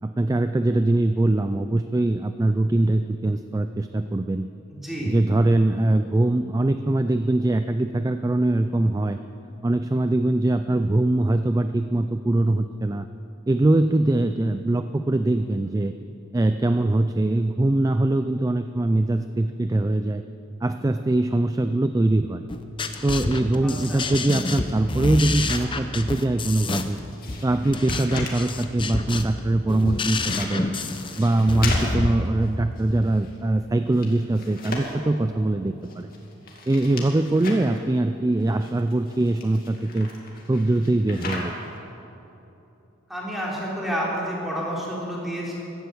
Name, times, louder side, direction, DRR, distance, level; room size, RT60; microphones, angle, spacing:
voice 1, 0.0-4.5 5.0-9.2 9.6-13.1 13.5-15.9 16.3-20.2 20.6-22.4 23.0-27.0 27.4-30.7 31.2-36.1 36.7-40.1 40.5-41.5, right 2 dB, 15° right, 10 dB, 0.3 m, -22 dB
voice 2, 4.7-5.1 23.6-24.0 43.1-45.5, equal, ahead, -6 dB, 3.5 m, -30 dB
sound 1, 22.5-32.1, left 2 dB, 25° left, 0.7 m, -28 dB
sound 2, 24.4-26.0 26.4-28.5 29.5-33.4 33.7-35.2 35.8-37.8 38.3-41.8, left 2 dB, 45° left, 2.4 m, -38 dB
15.0 x 12.0 x 7.9 m, 3.0 s
head